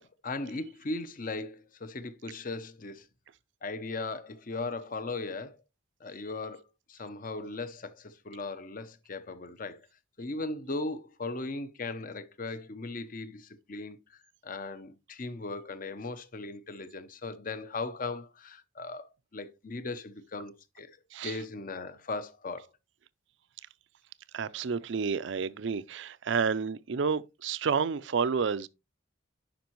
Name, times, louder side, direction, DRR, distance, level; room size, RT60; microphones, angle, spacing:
voice 1, 0.0-3.1 3.6-5.6 6.0-6.6 6.9-9.9 10.2-21.0 21.2-22.7, left 3 dB, 40° left, 0.7 m, -38 dB
voice 2, 24.3-28.7, right 5 dB, 65° right, 0.4 m, -30 dB
10.5 x 5.2 x 3.0 m
head